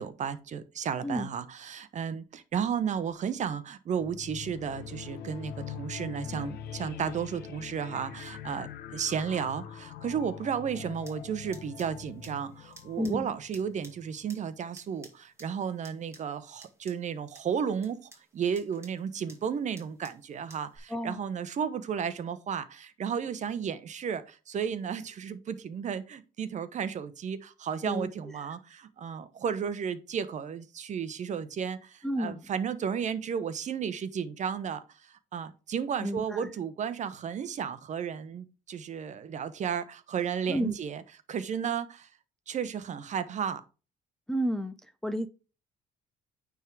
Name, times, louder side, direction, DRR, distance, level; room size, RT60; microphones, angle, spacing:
voice 1, 0.0-41.0 41.3-42.1 42.5-43.6, right 7 dB, 45° right, 0.9 m, -33 dB
sound 1, 4.0-14.2, left 9 dB, 70° left, 0.9 m, -43 dB
sound 2, 11.0-20.8, right 2 dB, 15° right, 2.5 m, -56 dB
voice 2, 13.0-13.4 20.9-21.3 27.8-28.1 28.4-28.5 32.0-32.5 36.0-36.5 40.5-40.8 44.3-44.7 45.0-45.3, equal, 5° left, 0.5 m, -31 dB
9.2 x 3.7 x 4.5 m
cardioid pair, 110°, 17 cm